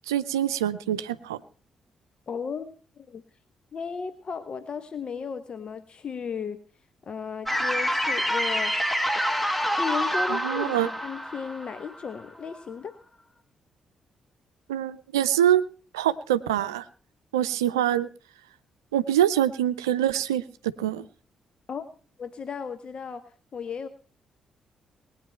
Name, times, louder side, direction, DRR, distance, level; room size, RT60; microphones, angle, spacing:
voice 1, 0.1-1.4 10.3-10.9 14.7-15.6 15.9-16.9 17.3-18.1 18.9-21.1, right 11 dB, 85° right, 14 dB, 0.5 m, -25 dB
voice 2, 2.3-3.2 3.7-6.6 7.1-9.0 9.8-10.7 11.0-12.9 21.7-21.8 22.2-23.2 23.5-23.9, left 6 dB, 50° left, 11 dB, 0.9 m, -35 dB
sound 1, 7.5-12.5, equal, 5° left, 1.4 m, -27 dB
20.5 x 9.3 x 4.4 m, 0.38 s
figure-of-eight pair, 40°, 2 cm